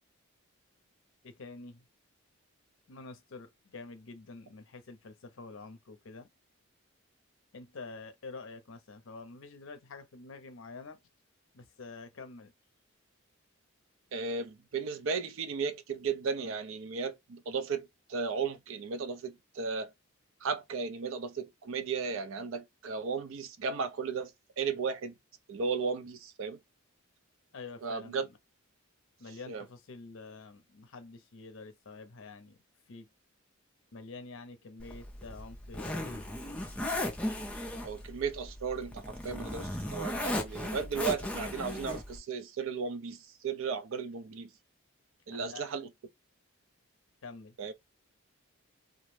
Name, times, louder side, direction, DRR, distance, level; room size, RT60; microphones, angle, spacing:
voice 1, 1.2-1.8 2.9-6.3 7.5-11.0 11.5-12.5 27.5-28.2 29.2-32.6 32.9-33.1 33.9-36.3 45.3-45.7 47.2-47.5, left 3 dB, 65° left, 0.5 m, -47 dB
voice 2, 14.1-19.9 20.4-25.1 25.5-26.6 27.8-28.3 29.5-29.7 37.8-44.5 45.3-45.9 47.6-47.7, right 5 dB, 65° right, 0.4 m, -35 dB
Zipper (clothing), 34.8-42.2, left 1 dB, 5° left, 0.3 m, -37 dB
2.4 x 2.0 x 3.1 m
head